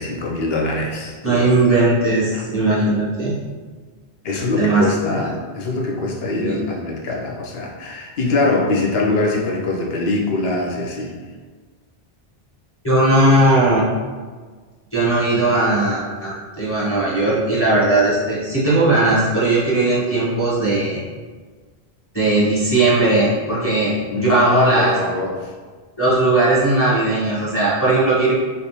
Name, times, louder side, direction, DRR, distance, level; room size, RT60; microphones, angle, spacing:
voice 1, 0.0-1.5 2.3-2.4 4.2-11.1 24.1-25.5, left 2 dB, 75° left, -1 dB, 0.9 m, -23 dB
voice 2, 1.2-3.3 4.6-4.9 6.4-6.6 12.8-13.9 14.9-21.0 22.1-24.9 26.0-28.3, right 2 dB, 15° left, -9 dB, 0.9 m, -18 dB
3.3 x 2.7 x 2.8 m, 1.5 s
omnidirectional pair, 1.1 m